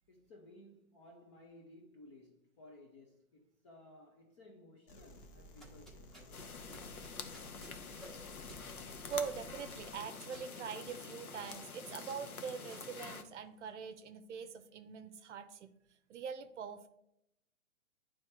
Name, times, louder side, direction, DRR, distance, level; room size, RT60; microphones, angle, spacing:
voice 1, 0.1-6.3, left 1 dB, 20° left, 0.4 m, -58 dB
sound 1, 4.9-9.9, equal, 35° left, 1.0 m, -55 dB
sound 2, 5.5-13.8, right 1 dB, ahead, 1.0 m, -59 dB
sound 3, 6.3-13.2, left 5 dB, 90° left, 0.9 m, -47 dB
voice 2, 9.1-15.7 16.1-16.9, right 6 dB, 55° right, 0.7 m, -43 dB
9.4 x 3.4 x 4.2 m
hypercardioid pair, 125°, 42 cm